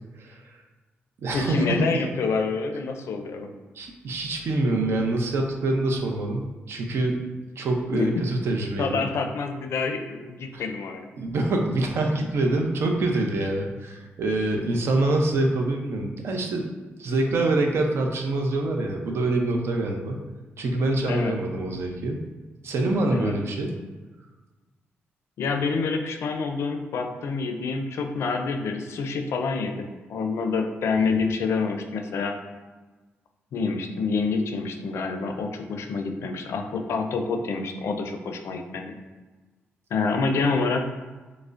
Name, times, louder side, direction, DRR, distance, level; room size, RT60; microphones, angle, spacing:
voice 1, 0.2-0.5 1.2-2.0 3.7-7.3 7.6-9.0 10.5-10.6 11.2-16.7 17.0-20.2 20.6-22.2 22.6-23.7 30.9-31.0, right 2 dB, 65° right, 2 dB, 0.5 m, -25 dB
voice 2, 1.3-3.5 7.9-8.1 8.8-11.1 21.1-21.3 23.1-23.3 25.4-32.3 33.5-38.9 39.9-40.9, left 4 dB, 75° left, 5 dB, 0.4 m, -27 dB
4.8 x 2.0 x 2.4 m, 1.3 s
cardioid pair, 100°, 5 cm